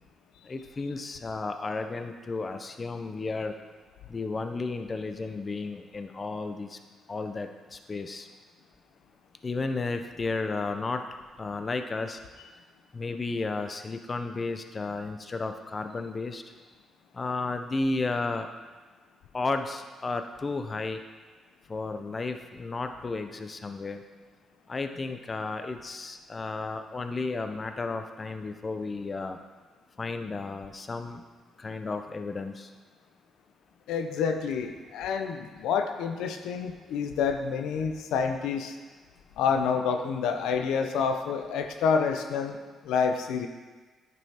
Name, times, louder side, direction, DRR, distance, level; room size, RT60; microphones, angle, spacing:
voice 1, 0.4-3.6 4.1-6.8 7.1-8.3 9.4-11.0 11.4-12.2 12.9-16.4 17.1-18.5 19.3-21.0 21.7-24.0 24.7-29.4 30.0-31.2 31.6-32.7, left 3 dB, 30° left, 7 dB, 0.5 m, -33 dB
voice 2, 33.9-38.8 39.4-42.6 42.8-43.5, left 6 dB, 90° left, 6 dB, 0.5 m, -28 dB
9.3 x 5.4 x 2.8 m, 1.4 s
cardioid pair, 90°, 0 cm